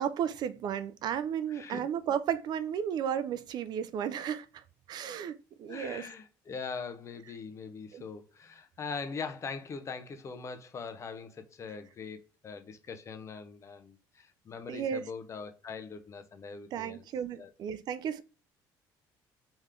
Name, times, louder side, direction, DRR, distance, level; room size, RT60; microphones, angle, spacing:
voice 1, 0.0-4.6 4.9-6.1 7.9-8.0 14.7-15.0 16.7-18.2, right 8 dB, 55° right, 0.4 m, -33 dB
voice 2, 1.5-1.8 5.7-17.1 17.3-17.5, left 5 dB, 35° left, 0.7 m, -42 dB
3.3 x 3.1 x 3.7 m
cardioid pair, 105°, 8 cm